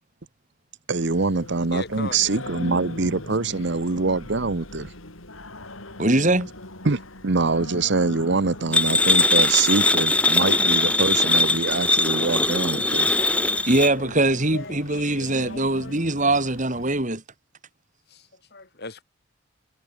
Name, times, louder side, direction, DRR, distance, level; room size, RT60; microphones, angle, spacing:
voice 1, 0.9-4.9 6.8-13.1, right 3 dB, 55° right, 1.0 m, -24 dB
Singing, 1.0-17.0, left 1 dB, 75° left, 7.5 m, -40 dB
voice 2, 1.7-2.3 13.5-14.8 15.4-16.0 18.1-19.0, left 3 dB, 50° left, 6.7 m, -40 dB
voice 3, 6.0-6.5 13.7-17.2, right 2 dB, 35° right, 2.9 m, -22 dB
sound 1, 8.7-13.9, left 2 dB, 5° left, 0.9 m, -20 dB
head